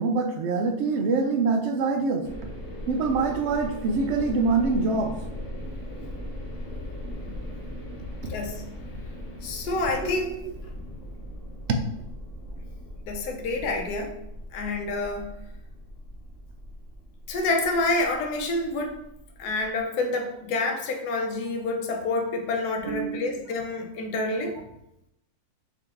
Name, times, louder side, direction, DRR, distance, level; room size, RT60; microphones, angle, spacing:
voice 1, 0.0-2.3 2.9-5.1 10.0-10.1 11.7-11.8 22.8-23.4, right 4 dB, 75° right, 4 dB, 0.6 m, -25 dB
sound 1, 2.2-19.8, equal, 60° left, 1.1 m, -39 dB
voice 2, 7.1-7.6 8.3-8.6 9.4-10.3 13.0-14.1 14.5-15.3 17.3-19.0 19.4-24.6, left 2 dB, 80° left, 3 dB, 1.2 m, -28 dB
3.8 x 2.8 x 3.4 m, 0.83 s
omnidirectional pair, 1.7 m